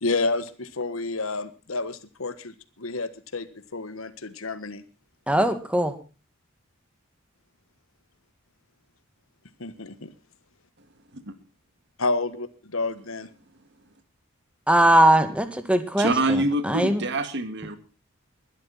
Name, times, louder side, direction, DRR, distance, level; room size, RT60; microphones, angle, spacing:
voice 1, 0.0-4.8 9.6-10.1 12.0-13.3, left 3 dB, 85° left, 13 dB, 1.5 m, -30 dB
voice 2, 5.3-5.9 14.7-16.1 16.7-17.0, right 1 dB, 5° right, 8 dB, 2.0 m, -19 dB
voice 3, 16.0-17.8, right 2 dB, 60° right, 10 dB, 2.0 m, -26 dB
21.0 x 12.0 x 4.2 m, 0.33 s
head